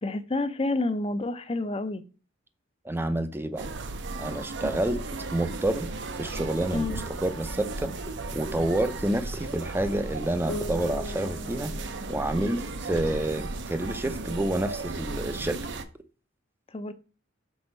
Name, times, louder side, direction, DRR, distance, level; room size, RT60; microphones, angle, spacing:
voice 1, 0.0-2.0 6.7-7.0 16.7-16.9, left 2 dB, 30° left, 0.6 m, -29 dB
voice 2, 2.8-3.7 4.2-5.9 6.2-7.9 8.3-11.7 12.1-15.6, right 1 dB, 10° right, 0.6 m, -29 dB
sound 1, 3.6-15.8, right 3 dB, 60° right, 0.7 m, -35 dB
Bass guitar, 10.5-14.2, left 1 dB, 60° left, 1.5 m, -41 dB
6.2 x 4.2 x 5.3 m
head